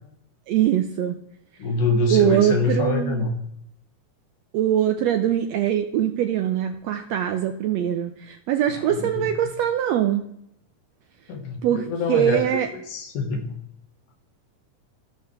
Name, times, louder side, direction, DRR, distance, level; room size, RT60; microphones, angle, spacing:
voice 1, 0.5-1.2 2.1-3.3 4.5-10.2 11.6-12.7, right 10 dB, 85° right, 7 dB, 1.5 m, -22 dB
voice 2, 1.6-3.3 8.8-9.3 11.3-12.4 12.7-13.6, left 3 dB, 80° left, 3 dB, 2.9 m, -25 dB
15.0 x 6.7 x 3.3 m, 0.75 s
omnidirectional pair, 3.6 m